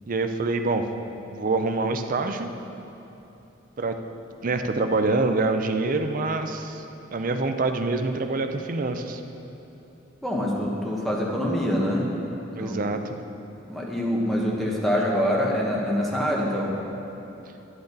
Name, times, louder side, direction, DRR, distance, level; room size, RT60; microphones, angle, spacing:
voice 1, 0.1-0.8 1.3-2.5 3.8-3.9 4.4-6.8 7.1-9.2 12.6-13.2, right 3 dB, 45° right, 7 dB, 0.5 m, -25 dB
voice 2, 10.2-12.1 12.6-12.8 13.7-16.8, equal, ahead, -4 dB, 1.3 m, -25 dB
11.0 x 10.0 x 4.0 m, 3.0 s
head